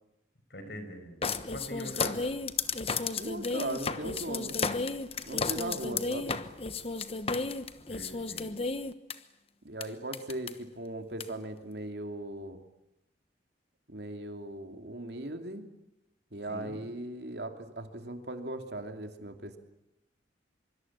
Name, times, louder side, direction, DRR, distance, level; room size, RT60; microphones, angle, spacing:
voice 1, 0.5-2.3 7.9-8.5 16.5-16.8, equal, 60° left, 8 dB, 5.6 m, -43 dB
sound 1, 1.2-9.1 9.8-9.9 10.1-10.5 11.2-11.3, left 4 dB, 30° left, 1.2 m, -33 dB
voice 2, 3.2-4.6 5.3-6.4 9.6-12.6 13.9-15.6 16.3-19.6, right 1 dB, 60° right, 6 dB, 2.8 m, -38 dB
25.0 x 24.0 x 8.8 m, 0.88 s
head